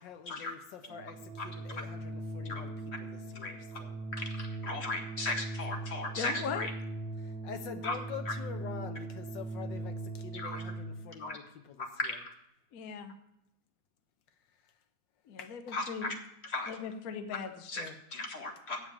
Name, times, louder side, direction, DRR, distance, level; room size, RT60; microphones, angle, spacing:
voice 1, 0.0-3.9 7.2-12.2 15.4-15.8, left 8 dB, 75° left, 1.6 m, -46 dB
Organ, 0.8-11.2, right 2 dB, 75° right, 1.6 m, -40 dB
voice 2, 4.1-6.7 7.8-7.9 10.3-10.6 11.2-11.4 12.0-12.3 15.7-16.1 16.5-16.7 17.7-17.8 18.1-18.8, left 2 dB, 35° left, 1.7 m, -36 dB
voice 3, 6.2-6.7 12.7-13.1 15.3-16.1 16.7-17.9, left 6 dB, 55° left, 1.1 m, -39 dB
8.3 x 7.0 x 8.6 m
omnidirectional pair, 2.1 m